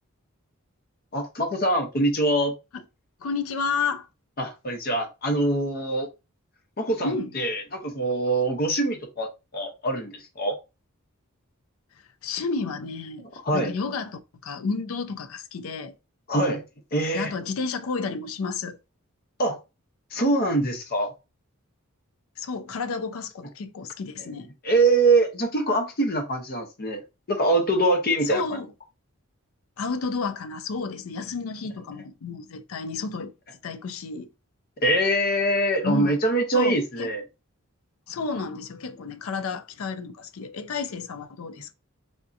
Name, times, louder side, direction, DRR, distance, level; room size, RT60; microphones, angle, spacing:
voice 1, 1.1-2.5 4.4-6.1 6.8-10.6 13.2-13.7 16.3-16.6 16.9-17.3 19.4-19.6 20.1-21.1 24.6-27.0 27.3-28.6 34.8-37.2, right 2 dB, 45° left, 0.8 m, -24 dB
voice 2, 3.2-4.1 7.0-7.4 12.2-13.3 13.5-15.9 17.1-18.8 22.4-24.5 28.2-28.7 29.8-33.3 33.6-34.3 35.8-36.2 36.5-37.1 38.1-41.7, left 4 dB, 70° left, 0.4 m, -31 dB
3.5 x 2.6 x 2.5 m
head